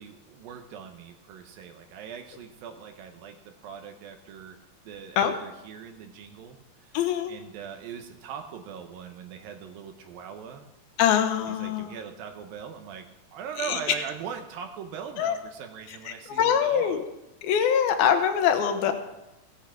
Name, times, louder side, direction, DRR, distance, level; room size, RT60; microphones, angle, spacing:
voice 1, 0.0-3.4 3.6-4.6 4.9-7.0 7.3-10.7 11.5-17.0, right 7 dB, 80° right, 5 dB, 2.7 m, -40 dB
voice 2, 6.9-7.3 11.0-12.0 13.6-13.8 15.2-15.4 16.3-17.0 17.4-18.9, left 8 dB, 80° left, 7 dB, 2.9 m, -23 dB
17.0 x 8.3 x 5.1 m, 0.93 s
omnidirectional pair, 4.3 m